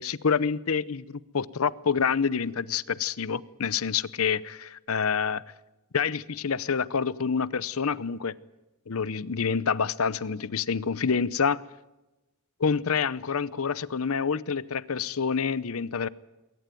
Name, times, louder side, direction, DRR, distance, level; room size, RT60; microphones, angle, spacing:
voice 1, 0.0-5.4 5.9-8.3 8.9-11.6 12.6-16.1, left 6 dB, 70° left, 20 dB, 0.7 m, -27 dB
21.5 x 18.5 x 9.1 m, 1.0 s
head